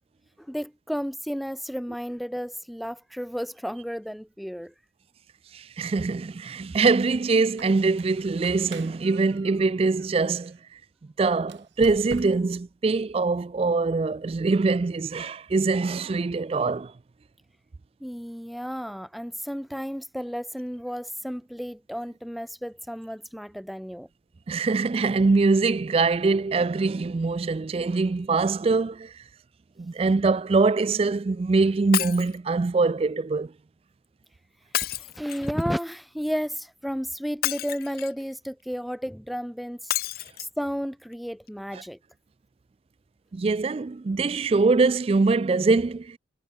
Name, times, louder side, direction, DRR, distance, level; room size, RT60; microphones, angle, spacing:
voice 1, 0.4-4.7 18.0-24.1 34.7-39.9 40.4-42.0, equal, ahead, 0.7 m, -33 dB
voice 2, 5.5-10.6 11.2-16.9 24.5-29.1 29.8-33.5 41.7-41.8 43.3-46.2, right 3 dB, 30° right, 0.3 m, -23 dB
Squeak, 7.4-10.6 11.4-12.7, right 3 dB, 65° right, 1.3 m, -45 dB
Shatter, 31.9-32.4 34.7-35.6 37.4-38.2 39.9-40.5 41.1-41.2 41.5-41.6, left 13 dB, 50° left, 0.4 m, -30 dB
head